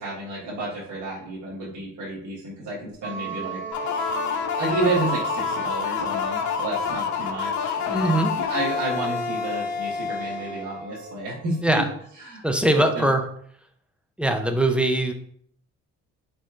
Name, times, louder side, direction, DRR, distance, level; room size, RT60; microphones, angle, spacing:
voice 1, 0.0-3.6 4.6-11.8 12.2-12.4 12.9-13.1, right 2 dB, 75° right, -8 dB, 1.5 m, -31 dB
sound 1, 3.0-11.2, right 6 dB, 35° right, 0.9 m, -37 dB
sound 2, 3.7-11.3, left 7 dB, 70° left, 0.6 m, -28 dB
voice 2, 7.9-8.4 11.6-11.9 12.4-13.2 14.2-15.1, right 1 dB, 5° right, 5 dB, 0.5 m, -21 dB
4.3 x 4.2 x 2.4 m, 0.63 s
cardioid pair, 90°, 30 cm